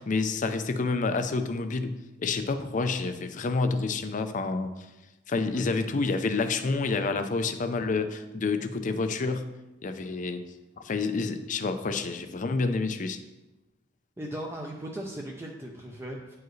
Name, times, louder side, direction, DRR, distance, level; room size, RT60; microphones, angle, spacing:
voice 1, 0.0-4.7 5.3-9.5 9.8-10.4 10.8-13.2, left 3 dB, 40° left, 9 dB, 0.5 m, -28 dB
voice 2, 5.5-5.8 14.2-16.3, right 1 dB, 15° right, -1 dB, 0.5 m, -38 dB
9.1 x 4.7 x 3.1 m, 1.0 s
head